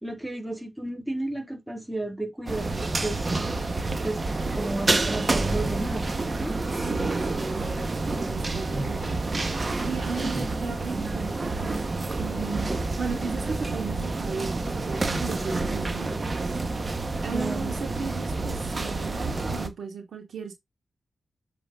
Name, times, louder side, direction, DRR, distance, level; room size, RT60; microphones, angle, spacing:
voice 1, 0.0-3.4 4.0-6.1 6.4-6.5 10.1-10.5 17.3-17.7, right 1 dB, 10° right, 3.2 m, -33 dB
sound 1, 2.5-19.7, right 3 dB, 40° right, 1.5 m, -28 dB
voice 2, 6.5-9.3 9.8-12.7 13.0-16.7 17.2-20.5, right 5 dB, 70° right, 2.7 m, -36 dB
7.6 x 4.3 x 3.7 m
supercardioid pair, 45°, 0 cm